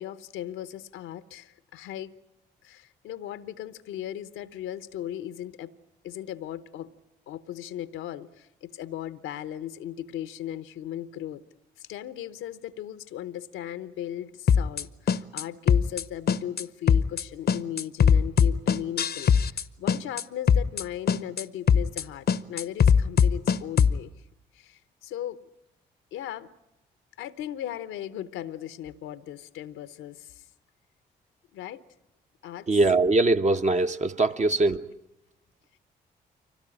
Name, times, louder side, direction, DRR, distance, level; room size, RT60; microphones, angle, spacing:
voice 1, 0.0-2.1 2.6-5.7 6.0-6.9 7.3-11.4 11.8-24.1 24.5-25.4 26.1-26.5 27.2-30.4 31.5-31.8 32.4-32.7 34.7-34.8, left 11 dB, 75° left, 15 dB, 0.9 m, -37 dB
sound 1, 14.5-14.8 15.1-15.4 15.7-16.0 16.3-16.6 16.9-17.2 17.5-19.6 19.9-20.2 20.5-20.8 21.1-21.4 21.7-22.0 22.3-24.0, left 7 dB, 50° left, 0.9 m, -20 dB
voice 2, 32.7-34.9, right 2 dB, 35° right, 7 dB, 1.2 m, -22 dB
25.0 x 17.5 x 10.0 m, 0.88 s
hypercardioid pair, 45°, 21 cm